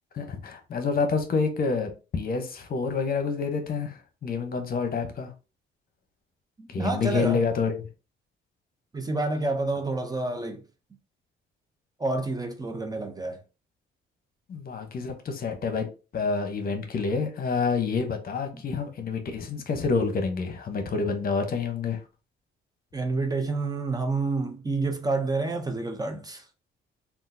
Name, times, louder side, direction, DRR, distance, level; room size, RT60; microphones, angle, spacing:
voice 1, 0.1-5.3 6.7-7.7 14.5-15.9 16.1-22.0, left 5 dB, 50° left, 0.8 m, -28 dB
voice 2, 6.6-7.4 8.9-10.6 12.0-13.4 18.5-18.6 22.9-26.4, right 3 dB, 20° right, 0.5 m, -29 dB
3.6 x 2.4 x 2.6 m
cardioid pair, 90°, 20 cm